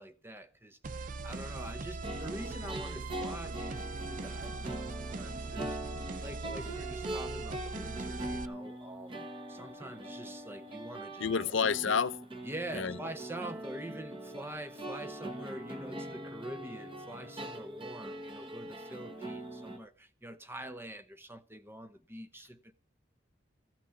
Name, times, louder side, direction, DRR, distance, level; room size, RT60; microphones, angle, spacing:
voice 1, 0.0-5.8 6.2-11.6 12.4-22.7, right 1 dB, 10° right, 0.7 m, -45 dB
sound 1, 0.8-8.5, right 3 dB, 45° right, 0.5 m, -40 dB
sound 2, 2.0-19.8, right 1 dB, 25° right, 1.4 m, -42 dB
voice 2, 11.2-12.2 12.7-13.0, left 6 dB, 80° left, 0.6 m, -29 dB
15.0 x 6.0 x 6.9 m
head